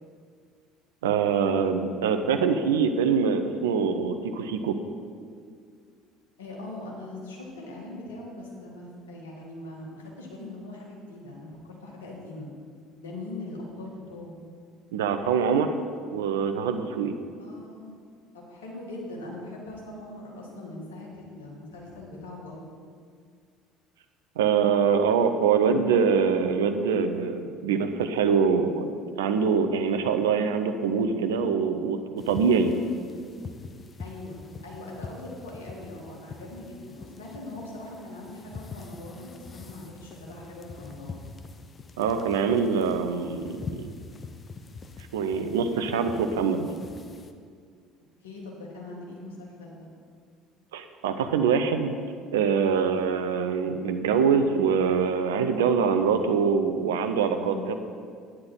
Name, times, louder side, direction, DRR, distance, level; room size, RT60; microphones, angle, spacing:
voice 1, 1.0-4.8 14.9-15.7 16.1-17.1 24.4-28.9 29.2-32.0 32.3-32.7 42.0-43.9 45.1-46.7 50.7-51.9 52.3-57.7, right 6 dB, 70° right, 7 dB, 0.7 m, -24 dB
voice 2, 6.4-12.5 13.0-14.4 17.4-18.0 18.3-22.8 32.6-32.9 34.0-41.2 48.2-49.9 57.3-57.7, left 2 dB, 75° left, -3 dB, 2.2 m, -41 dB
sound 1, 32.2-47.3, left 4 dB, 30° left, 0.8 m, -44 dB
10.0 x 9.6 x 4.4 m, 2.1 s
figure-of-eight pair, 60°, 0 cm